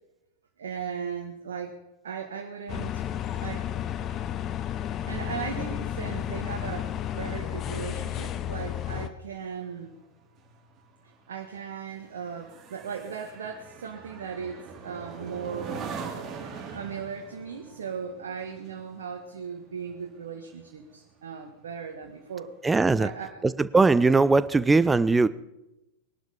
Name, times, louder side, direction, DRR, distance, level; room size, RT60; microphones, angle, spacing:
voice 1, 0.6-1.7 2.0-3.0 3.3-3.6 5.1-9.9 11.3-15.9 16.3-22.5 23.0-23.4, right 6 dB, 65° right, 2 dB, 1.7 m, -37 dB
sound 1, 2.7-9.1, left 10 dB, 30° left, 0.9 m, -32 dB
sound 2, 9.3-21.0 21.4-21.7, right 5 dB, 30° right, 3.2 m, -42 dB
voice 2, 22.6-23.1 23.4-25.3, right 3 dB, 10° right, 16 dB, 0.6 m, -20 dB
21.0 x 12.0 x 5.1 m, 0.93 s
figure-of-eight pair, 90°, 0 cm